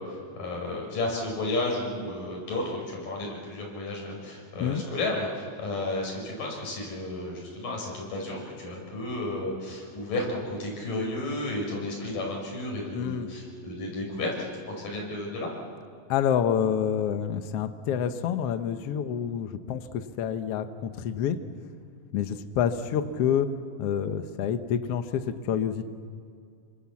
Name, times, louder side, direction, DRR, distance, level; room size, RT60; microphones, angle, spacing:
voice 1, 0.0-14.3 14.8-15.5, left 2 dB, 65° left, -1 dB, 7.0 m, -32 dB
voice 2, 12.9-13.3 16.1-21.4 22.1-23.5 23.8-25.9, left 8 dB, 80° left, 9 dB, 1.3 m, -28 dB
28.5 x 24.5 x 7.3 m, 2.3 s
omnidirectional pair, 4.2 m